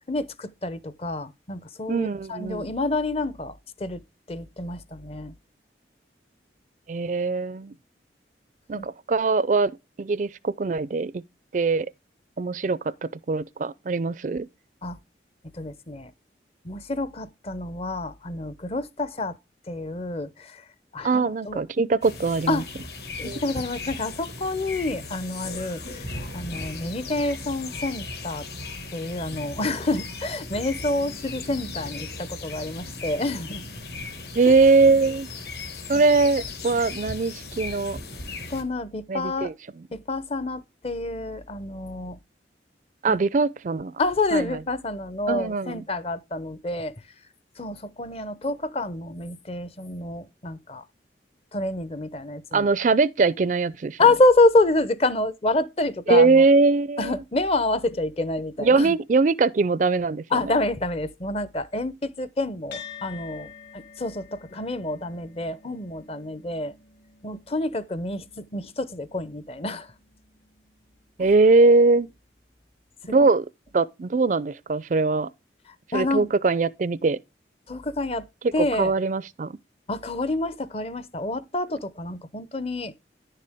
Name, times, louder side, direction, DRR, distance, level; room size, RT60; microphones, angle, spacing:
voice 1, 0.1-4.0 4.3-5.3 8.7-8.9 14.8-15.0 15.5-16.1 16.6-19.4 19.7-20.7 20.9-21.6 22.5-22.7 23.2-28.5 28.9-33.6 35.9-36.0 38.5-39.5 39.9-42.2 43.1-43.2 44.0-46.9 47.6-50.8 51.5-52.7 54.0-56.5 57.0-59.0 60.3-66.7 67.2-69.9 71.2-71.3 73.1-73.3 75.9-76.3 77.7-78.3 78.5-78.9 79.9-82.9, left 2 dB, 30° left, 0.7 m, -27 dB
voice 2, 1.9-2.7 6.9-7.7 8.7-9.7 10.0-11.2 11.5-11.9 12.4-14.5 21.0-22.6 23.2-23.4 34.4-35.3 35.9-38.0 39.1-39.5 43.0-43.9 44.3-44.5 45.3-45.8 52.5-54.0 56.1-57.2 58.6-60.5 71.2-72.1 73.1-73.4 73.7-75.3 75.9-77.2 78.6-79.6, right 3 dB, 45° right, 0.4 m, -21 dB
sound 1, 22.0-38.6, left 3 dB, 60° left, 1.7 m, -37 dB
sound 2, 62.7-71.4, left 7 dB, 80° left, 3.8 m, -48 dB
10.5 x 6.7 x 3.4 m
head